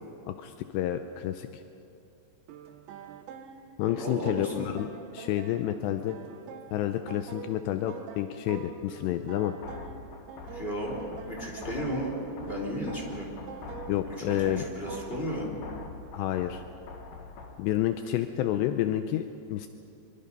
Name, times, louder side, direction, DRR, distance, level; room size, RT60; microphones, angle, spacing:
voice 1, 0.3-1.5 3.8-6.2 6.7-9.5 13.9-14.6 16.1-16.6 17.6-19.7, left 12 dB, 80° left, 8 dB, 2.8 m, -29 dB
sound 1, 2.5-15.3, right 7 dB, 80° right, 3.4 m, -46 dB
voice 2, 3.9-4.7 10.5-12.1 12.4-13.3 14.4-15.5, equal, 15° left, -2 dB, 3.1 m, -34 dB
sound 2, 9.6-17.6, left 4 dB, 55° left, 3.1 m, -44 dB
25.0 x 23.5 x 5.5 m, 2.8 s
omnidirectional pair, 5.2 m